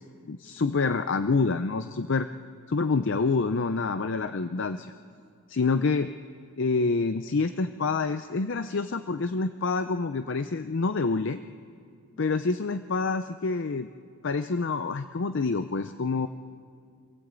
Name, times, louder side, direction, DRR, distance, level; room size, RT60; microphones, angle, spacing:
voice 1, 0.3-2.3 2.7-4.9 5.5-6.1 6.6-11.4 12.2-13.9 14.2-16.3, left 4 dB, 55° left, 10 dB, 0.5 m, -27 dB
25.5 x 16.5 x 8.2 m, 2.2 s
head